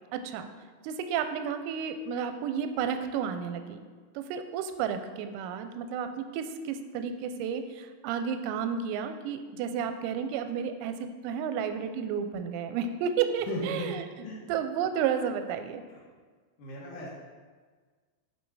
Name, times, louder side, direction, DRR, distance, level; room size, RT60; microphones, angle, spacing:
voice 1, 0.1-0.5 0.8-3.8 4.2-14.0 14.5-15.8, right 7 dB, 90° right, 8 dB, 3.3 m, -32 dB
voice 2, 13.5-13.9 14.2-14.5 15.9-16.0 16.6-17.1, left 1 dB, 65° left, -7 dB, 2.0 m, -36 dB
8.5 x 5.8 x 4.7 m, 1.5 s
omnidirectional pair, 5.8 m